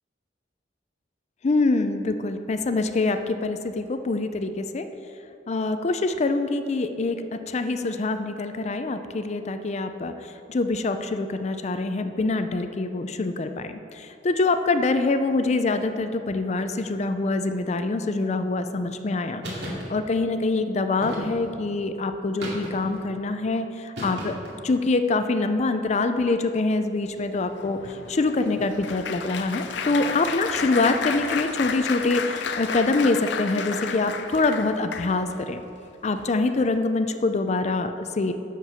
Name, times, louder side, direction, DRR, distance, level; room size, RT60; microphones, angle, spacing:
voice 1, 1.4-4.9 5.5-24.4 24.6-35.6 36.0-38.3, left 3 dB, 40° left, 9 dB, 0.5 m, -25 dB
sound 1, 19.4-19.9 21.0-21.6 22.4-23.0 23.9-24.6, equal, 75° right, 2.3 m, -34 dB
Applause, 27.1-35.4 36.1-36.3 36.6-36.8, left 6 dB, 85° left, 0.6 m, -32 dB
10.5 x 4.6 x 6.8 m, 2.6 s
head